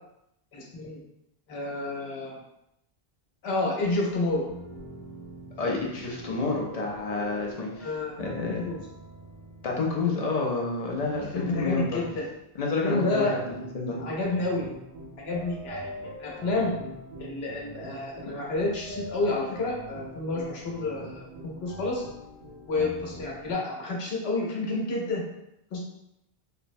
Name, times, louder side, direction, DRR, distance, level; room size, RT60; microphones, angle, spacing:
voice 1, 0.5-1.0 1.5-2.4 3.4-4.5 7.8-8.2 8.5-8.8 11.3-12.3 12.8-13.4 14.0-14.7 15.2-15.8 16.2-16.7 17.2-22.0 22.7-25.2 25.7-25.8, left 2 dB, 85° left, -2 dB, 1.0 m, -29 dB
sound 1, 3.8-12.3 13.1-23.5, right 1 dB, 90° right, 1.1 m, -44 dB
voice 2, 5.6-7.9 8.2-8.7 9.6-12.0 12.5-14.0, left 3 dB, 45° left, -1 dB, 0.5 m, -29 dB
3.2 x 2.0 x 2.5 m, 0.83 s
omnidirectional pair, 1.0 m